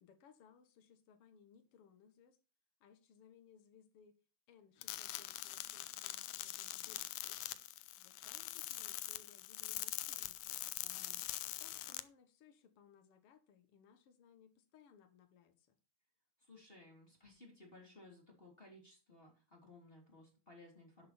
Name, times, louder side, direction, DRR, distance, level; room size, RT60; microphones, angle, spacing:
voice 1, 0.0-2.4 2.8-4.2 4.5-7.6 8.0-10.6 11.6-15.8, left 7 dB, 60° left, 1.5 m, -65 dB
sound 1, 4.8-12.0, left 16 dB, 90° left, 1.8 m, -43 dB
voice 2, 10.8-11.2 16.4-21.1, left 2 dB, 15° left, 2.9 m, -59 dB
11.5 x 7.5 x 4.4 m
omnidirectional pair, 4.5 m